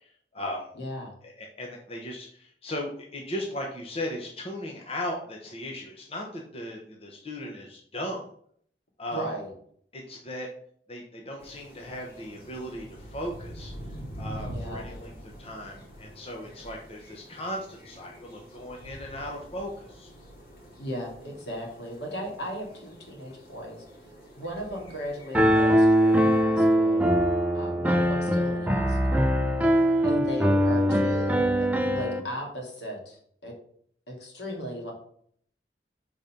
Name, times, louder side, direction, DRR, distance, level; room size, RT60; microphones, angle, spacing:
voice 1, 0.0-0.7 1.2-8.3 9.0-9.3 9.9-10.5 10.9-13.7 14.2-20.1, left 1 dB, 35° left, 0 dB, 0.8 m, -37 dB
voice 2, 0.8-1.1 9.1-9.5 14.5-14.8 20.8-23.8 24.4-27.0 27.5-29.3 30.0-33.5 34.1-34.9, equal, 75° left, -1 dB, 2.1 m, -36 dB
sound 1, 11.4-26.4, equal, 55° left, 2.6 m, -45 dB
Piano, 25.3-32.2, equal, 10° right, 0.5 m, -22 dB
5.2 x 3.9 x 5.7 m, 0.62 s
head